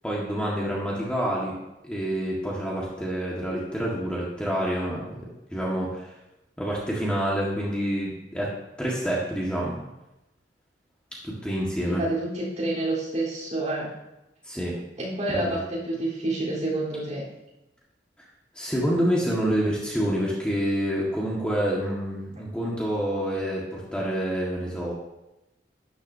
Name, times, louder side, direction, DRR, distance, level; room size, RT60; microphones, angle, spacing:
voice 1, 0.0-1.6 1.8-5.2 5.5-6.1 6.6-8.5 8.8-9.7 11.2-12.0 14.4-14.8 15.3-15.6 18.5-24.9, equal, 5° left, -5 dB, 1.7 m, -27 dB
voice 2, 11.8-14.0 15.0-17.3, right 1 dB, 40° right, -6 dB, 3.8 m, -28 dB
12.5 x 10.0 x 2.8 m, 0.95 s
head